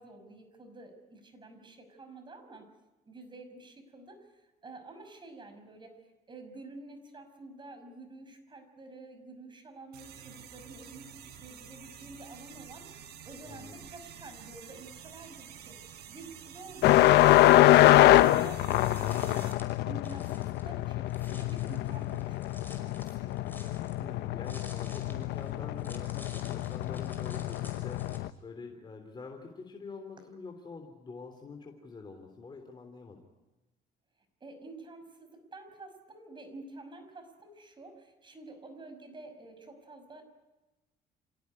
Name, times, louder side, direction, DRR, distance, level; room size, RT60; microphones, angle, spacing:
voice 1, 0.0-2.7 3.1-6.0 6.3-12.9 13.2-19.5 19.9-23.5 34.4-40.2, right 2 dB, 30° right, 6 dB, 5.8 m, -49 dB
sound 1, 9.9-19.5, right 8 dB, 75° right, 4.9 m, -49 dB
voice 2, 13.4-13.8 24.0-33.2, left 4 dB, 25° left, 3 dB, 3.4 m, -46 dB
sound 2, 16.8-28.3, left 15 dB, 80° left, 0.8 m, -25 dB
sound 3, 18.5-28.2, left 2 dB, 10° left, 5.6 m, -53 dB
27.5 x 17.0 x 9.9 m, 1.1 s
cardioid pair, 110°, 17 cm